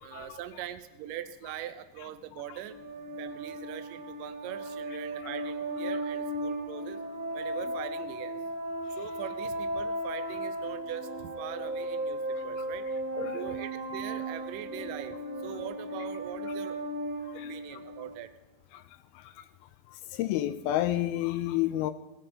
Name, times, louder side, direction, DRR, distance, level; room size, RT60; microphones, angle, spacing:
voice 1, 0.0-2.8 3.2-7.0 7.3-8.4 9.0-12.9 13.3-15.2 15.4-16.8 17.5-18.3, right 11 dB, 85° right, 12 dB, 1.9 m, -41 dB
sound 1, 2.7-18.1, right 1 dB, 40° right, 3.2 m, -36 dB
voice 2, 20.1-21.9, left 14 dB, 80° left, 12 dB, 2.3 m, -29 dB
19.0 x 8.8 x 4.3 m, 1.1 s
omnidirectional pair, 4.6 m